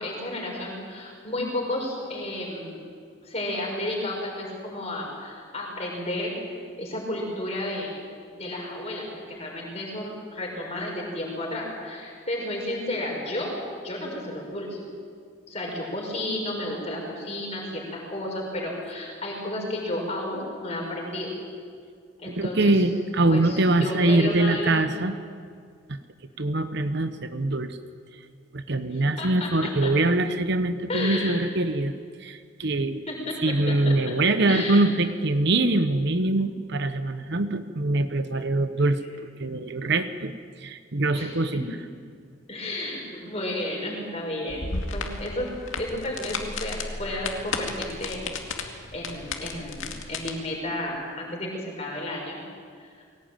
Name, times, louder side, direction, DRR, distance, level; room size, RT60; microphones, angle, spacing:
voice 1, 0.0-2.8 3.2-6.4 6.8-7.9 8.3-13.5 13.8-14.8 15.5-21.3 22.2-22.8 23.3-24.7 28.9-29.9 30.9-31.4 33.1-34.1 34.4-34.9 41.1-41.6 42.5-44.6 44.9-45.5 45.8-48.3 48.5-52.4 52.8-52.9, left 1 dB, 30° left, -1 dB, 5.9 m, -32 dB
voice 2, 22.3-25.1 25.9-26.0 26.4-27.8 28.5-31.9 32.2-33.0 33.4-40.3 40.6-41.7, right 2 dB, 55° right, 10 dB, 0.9 m, -24 dB
sound 1, 44.5-50.3, left 3 dB, 65° left, 2.2 m, -34 dB
21.5 x 18.0 x 9.1 m, 2.1 s
head